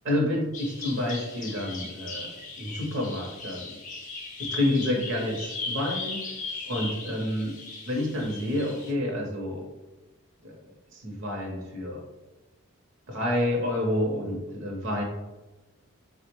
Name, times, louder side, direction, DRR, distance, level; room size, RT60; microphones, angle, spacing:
voice 1, 0.0-2.3 2.6-3.8 4.4-6.2 6.6-9.7 10.4-10.5 10.9-12.0 13.1-15.0, left 1 dB, 60° right, 0 dB, 0.7 m, -29 dB
Bird vocalization bird call bird song, 0.5-8.9, left 3 dB, 35° left, 0.4 m, -38 dB
3.5 x 2.1 x 2.9 m, 1.1 s
head